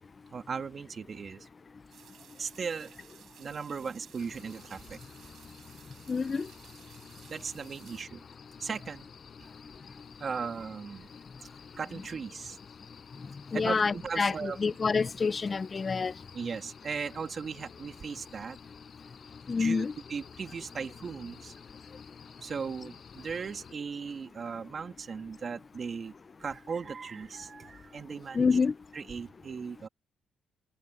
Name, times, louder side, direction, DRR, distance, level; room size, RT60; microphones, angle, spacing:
voice 1, 0.3-1.5 2.4-2.9 3.4-5.0 7.3-8.2 8.6-9.1 10.2-11.1 11.8-12.6 13.5-14.6 16.3-18.6 19.6-21.5 22.4-26.1 26.4-28.5 28.9-29.9, right 5 dB, 45° right, 2.7 m, -37 dB
sound 1, 1.9-8.0, right 9 dB, 65° right, 6.9 m, -56 dB
sound 2, 4.2-23.7, left 7 dB, 50° left, 5.7 m, -52 dB
voice 2, 6.1-6.5 13.5-16.1 19.5-19.9 28.3-28.7, left 5 dB, 35° left, 0.8 m, -27 dB
cardioid pair, 90°, 0 cm